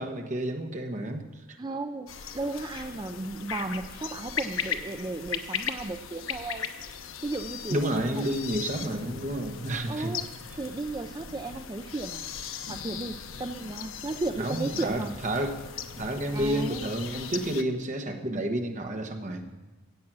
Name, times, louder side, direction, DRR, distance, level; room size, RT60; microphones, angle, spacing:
voice 1, 0.0-1.6 7.7-10.1 14.4-15.7 16.0-19.5, right 1 dB, 40° right, 4 dB, 1.2 m, -30 dB
voice 2, 1.6-6.7 7.2-7.8 8.1-8.2 9.9-10.3 10.6-12.2 12.7-15.2 16.3-17.0, right 2 dB, 20° right, 7 dB, 0.4 m, -34 dB
sound 1, 2.1-17.6, left 7 dB, 85° left, 0.8 m, -38 dB
15.0 x 8.5 x 6.1 m, 1.2 s
head